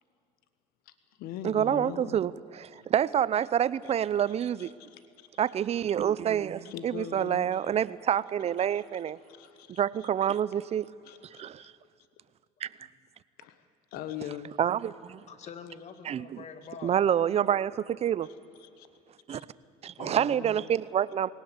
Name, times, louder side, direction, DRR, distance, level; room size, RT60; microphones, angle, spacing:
voice 1, 0.8-2.2 2.8-2.9 3.8-3.9 4.3-5.8 6.6-7.7 8.6-10.4 11.0-11.7 13.4-14.6 18.2-18.9 19.3-19.4, left 10 dB, 70° left, 12 dB, 1.3 m, -43 dB
voice 2, 1.4-2.3 2.6-4.7 5.4-9.2 9.7-10.9 11.4-11.7 12.6-12.7 14.6-15.2 16.0-16.4 16.8-18.3 19.3-19.4 19.8-21.3, right 9 dB, 40° right, 19 dB, 0.7 m, -27 dB
voice 3, 15.3-17.2 20.0-20.7, left 6 dB, 45° left, 10 dB, 2.2 m, -45 dB
20.5 x 18.5 x 8.1 m, 2.5 s
supercardioid pair, 95°, 16 cm